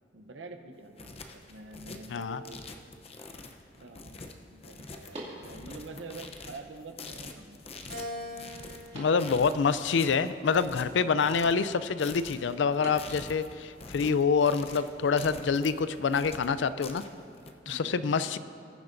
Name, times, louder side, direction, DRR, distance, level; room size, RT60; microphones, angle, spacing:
voice 1, 0.1-2.6 3.8-7.6 17.6-18.0, right 3 dB, 85° right, 6 dB, 0.8 m, -46 dB
sound 1, 0.7-17.5, left 3 dB, 35° left, 0.7 m, -45 dB
voice 2, 2.1-2.4 8.9-17.0 17.7-18.4, left 5 dB, 75° left, 14 dB, 0.4 m, -26 dB
sound 2, 3.5-16.6, right 1 dB, 35° right, 2.3 m, -53 dB
Keyboard (musical), 7.9-10.4 11.0-12.2, left 1 dB, 70° right, 2.6 m, -44 dB
20.5 x 10.5 x 2.6 m, 2.4 s
head